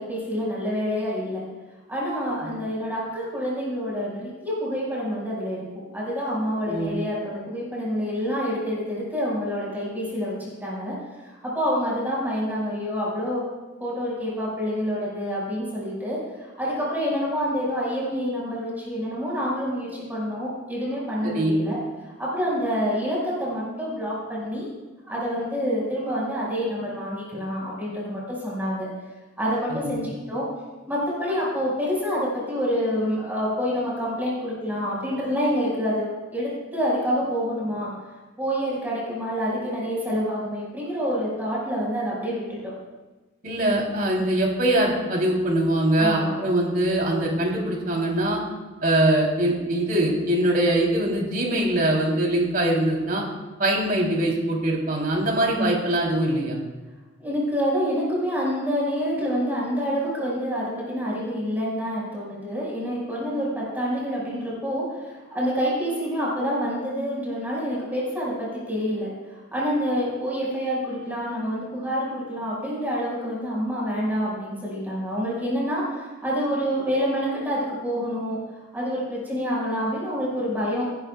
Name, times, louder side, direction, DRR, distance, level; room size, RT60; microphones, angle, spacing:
voice 1, 0.0-1.4 1.9-10.3 10.6-11.0 11.4-13.4 13.8-21.8 22.2-24.7 25.1-28.9 29.4-30.4 30.9-37.9 38.4-42.7 46.0-46.3 55.6-55.7 57.2-69.1 69.5-78.4 78.7-81.0, equal, 10° right, -6 dB, 5.7 m, -27 dB
voice 2, 21.2-21.5 29.7-30.0 43.4-48.4 48.8-53.2 53.6-56.6, right 1 dB, 50° right, -1 dB, 3.6 m, -22 dB
28.5 x 12.0 x 2.4 m, 1.2 s
head